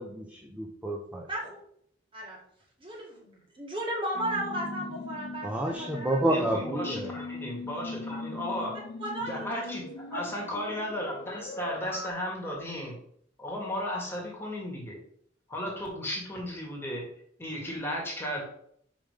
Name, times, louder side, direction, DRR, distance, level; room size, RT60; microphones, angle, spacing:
voice 1, 0.0-1.3 5.4-7.1, right 1 dB, 10° right, 1 dB, 0.7 m, -30 dB
voice 2, 1.3-1.6 2.1-2.4 2.8-6.4 8.5-8.7 9.0-10.2, right 1 dB, 30° right, -2 dB, 2.2 m, -35 dB
sound 1, 4.1-12.1, left 3 dB, 65° left, 1.0 m, -40 dB
voice 3, 6.3-8.7 9.3-9.8 10.1-13.0 13.4-15.0 15.5-17.1 17.4-18.4, equal, 15° left, -2 dB, 1.9 m, -34 dB
5.5 x 5.0 x 5.0 m, 0.66 s
head